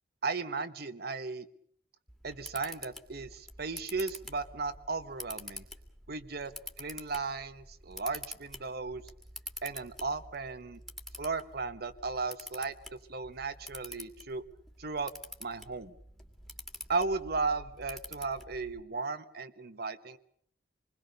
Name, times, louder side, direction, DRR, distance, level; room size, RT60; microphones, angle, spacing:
voice 1, 0.2-1.5 2.2-5.6 6.1-6.5 6.8-9.0 9.6-10.8 11.2-14.4 14.8-15.1 15.4-15.9 16.9-20.2, right 4 dB, 60° right, 10 dB, 1.2 m, -35 dB
Camera, 2.1-18.8, left 1 dB, ahead, 2.4 m, -47 dB
27.5 x 21.0 x 6.7 m, 0.64 s
head